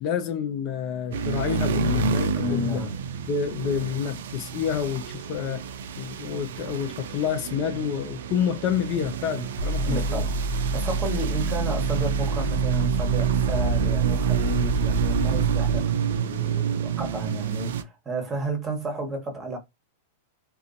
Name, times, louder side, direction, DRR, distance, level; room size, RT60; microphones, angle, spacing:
voice 1, 0.0-2.8 3.3-5.6 6.0-10.2, left 8 dB, 45° left, 0.5 m, -28 dB
sound 1, 1.1-17.8, right 8 dB, 70° right, 0.3 m, -28 dB
voice 2, 2.4-2.9 9.8-19.6, right 1 dB, 20° right, 1.1 m, -32 dB
sound 2, 9.6-15.8, right 2 dB, 85° left, 0.7 m, -28 dB
2.5 x 2.3 x 2.4 m
hypercardioid pair, 105°, 0 cm